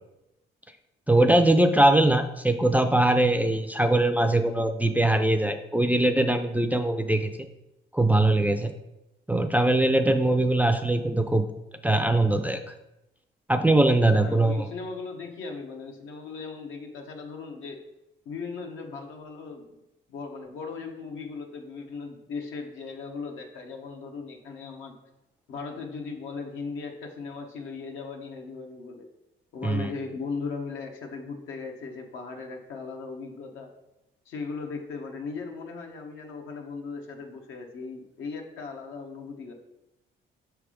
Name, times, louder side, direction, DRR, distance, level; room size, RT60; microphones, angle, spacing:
voice 1, 1.1-7.3 7.9-8.7 9.3-11.4 11.8-12.7 13.5-14.7 29.6-29.9, right 1 dB, 10° right, 8 dB, 0.4 m, -21 dB
voice 2, 14.2-17.8 18.2-19.7 20.1-25.0 25.5-29.1 29.5-33.7 34.3-39.5, left 4 dB, 80° left, 3 dB, 1.0 m, -38 dB
5.5 x 3.5 x 4.9 m, 0.90 s
cardioid pair, 90°, 20 cm